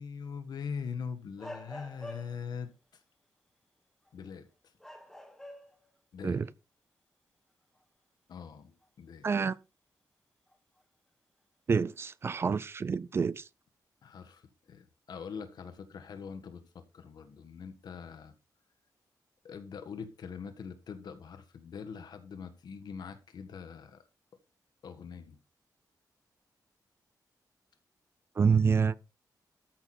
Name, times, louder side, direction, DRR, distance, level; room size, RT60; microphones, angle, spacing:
voice 1, 0.0-2.7 4.1-4.5 6.1-6.4 8.3-9.3 14.0-14.4 14.7-18.3 19.4-24.0 24.8-25.4 28.4-28.6, left 6 dB, 75° left, 1.6 m, -42 dB
sound 1, 1.4-2.6 4.1-4.3 4.8-5.9 6.3-6.4 8.8-8.9 10.5-10.8, equal, 5° left, 1.4 m, -46 dB
voice 2, 9.2-9.6 11.7-13.5 28.4-28.9, right 5 dB, 35° right, 0.4 m, -27 dB
13.5 x 6.0 x 4.3 m
wide cardioid pair, 170°, 7 cm